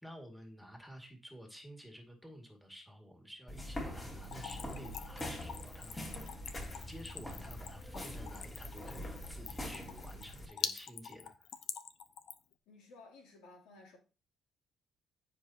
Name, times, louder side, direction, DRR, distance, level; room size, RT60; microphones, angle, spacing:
voice 1, 0.0-6.1 6.9-11.5, equal, ahead, 2.2 m, -52 dB
sound 1, 3.5-10.5, left 1 dB, 25° left, 2.8 m, -44 dB
Splash splatter / Trickle dribble, 4.2-12.5, left 8 dB, 65° left, 0.8 m, -44 dB
voice 2, 12.7-14.0, left 3 dB, 85° left, 3.0 m, -56 dB
15.0 x 5.2 x 2.9 m
cardioid pair, 115°, 0 cm